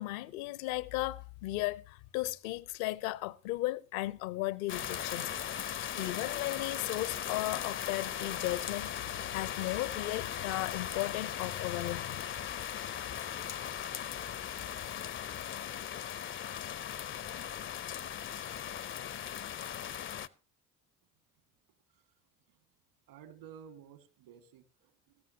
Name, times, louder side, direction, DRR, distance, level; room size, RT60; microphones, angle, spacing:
voice 1, 0.0-5.3 5.7-12.3, left 18 dB, 65° left, 0.8 m, -36 dB
sound 1, 4.7-20.3, left 9 dB, 25° left, 0.6 m, -38 dB
voice 2, 23.1-25.2, right 8 dB, 65° right, 1.9 m, -53 dB
18.5 x 14.5 x 2.8 m
figure-of-eight pair, 55°, 45 cm